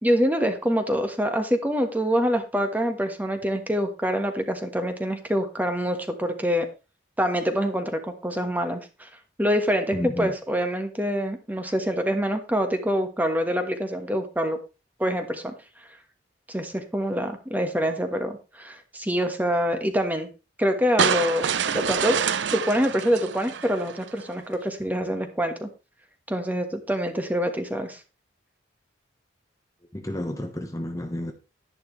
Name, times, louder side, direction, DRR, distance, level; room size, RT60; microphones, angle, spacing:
voice 1, 0.0-6.7 7.2-9.1 9.4-14.6 15.0-15.5 16.5-20.3 20.6-22.2 22.5-25.7 26.3-28.0, equal, 10° right, 1.5 m, -25 dB
voice 2, 9.9-10.3 29.9-31.3, left 1 dB, 20° left, 1.2 m, -31 dB
sound 1, 21.0-24.2, right 7 dB, 65° right, 0.6 m, -26 dB
11.5 x 10.5 x 3.2 m
head